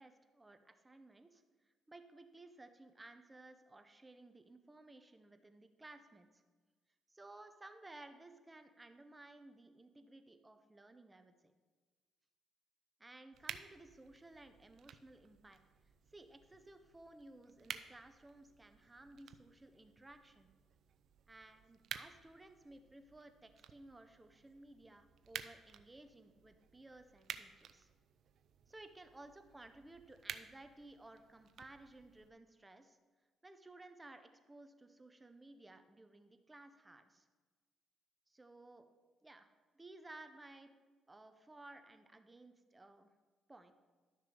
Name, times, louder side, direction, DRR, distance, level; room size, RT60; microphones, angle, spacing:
voice 1, 0.0-6.4 7.1-11.5 13.0-15.6 16.1-20.5 21.3-27.9 28.7-33.0 33.4-37.3 38.3-38.9 39.2-39.5 39.7-40.8 41.1-43.1 43.5-43.7, right 2 dB, 15° right, 8 dB, 0.8 m, -57 dB
sound 1, 13.3-32.3, right 8 dB, 65° right, 0.5 m, -53 dB
12.0 x 6.4 x 5.3 m, 1.4 s
cardioid pair, 90°, 0 cm